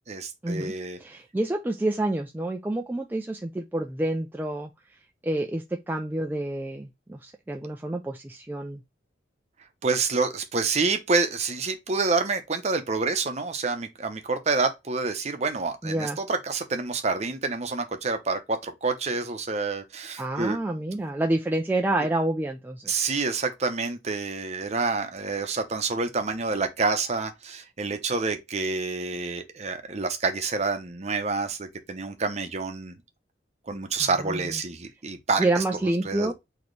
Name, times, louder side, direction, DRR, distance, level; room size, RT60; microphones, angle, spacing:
voice 1, 0.1-1.0 9.8-20.6 22.9-32.9 33.7-35.6 36.0-36.3, right 4 dB, 35° right, 0.7 m, -28 dB
voice 2, 1.0-4.7 5.2-8.8 15.8-16.2 20.2-23.0 34.0-34.6 35.4-36.3, right 1 dB, 10° right, 0.3 m, -28 dB
4.2 x 2.9 x 3.1 m
head